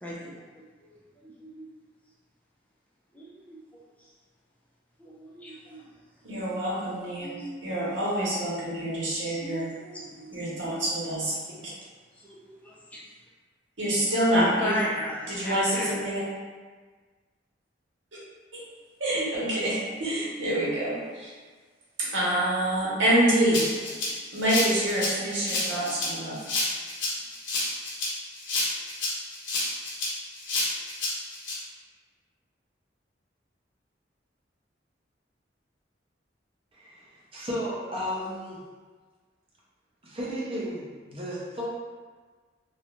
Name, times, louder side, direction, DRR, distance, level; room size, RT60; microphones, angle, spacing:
voice 1, 0.0-1.0 1.2-1.6 3.1-3.6 4.0-4.1 5.0-5.8 7.2-7.7 9.4-10.4 10.6-10.7 12.2-13.0 14.3-15.9, equal, 10° left, -5 dB, 0.3 m, -36 dB
voice 2, 6.2-7.3 7.6-9.7 10.3-11.7 13.8-14.8 15.3-16.2 18.5-18.6 19.0-21.3 22.0-24.0 24.3-26.4, right 1 dB, 80° right, -7 dB, 0.9 m, -26 dB
Rattle (instrument), 23.5-31.5, left 2 dB, 70° left, 0.7 m, -30 dB
voice 3, 37.3-38.6 40.0-41.6, equal, 30° right, -6 dB, 0.6 m, -33 dB
2.4 x 2.1 x 2.9 m, 1.4 s
head